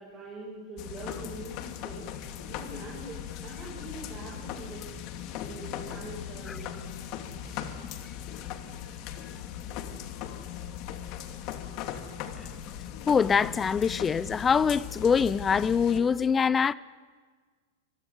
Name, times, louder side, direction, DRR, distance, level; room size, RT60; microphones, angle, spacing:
voice 1, 0.0-2.1 2.5-4.9 5.4-6.8 7.4-7.7, right 1 dB, 25° right, 8.0 m, -43 dB
sound 1, 0.8-16.0, left 9 dB, 50° left, 2.7 m, -39 dB
voice 2, 13.1-16.7, left 6 dB, 20° left, 0.7 m, -24 dB
23.0 x 23.0 x 9.6 m
hypercardioid pair, 110°, 0 cm